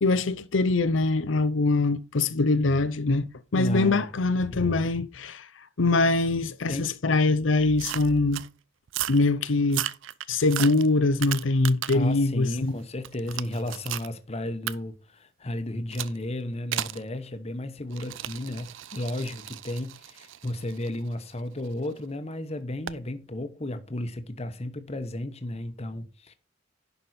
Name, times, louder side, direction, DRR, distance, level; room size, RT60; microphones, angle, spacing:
voice 1, 0.0-5.5 5.8-8.4 9.1-9.9 10.3-12.7, left 3 dB, 85° left, 0.7 m, -23 dB
voice 2, 3.5-4.1 4.5-4.8 6.7-6.9 11.9-26.3, left 1 dB, 35° left, 1.0 m, -33 dB
sound 1, 7.8-8.5 8.9-9.2 9.6-12.1 12.5-14.1 14.7-14.8 15.9-16.2 16.7-17.0 17.9-21.9 22.9-23.0, right 12 dB, 85° right, 0.5 m, -35 dB
11.0 x 5.3 x 4.2 m
head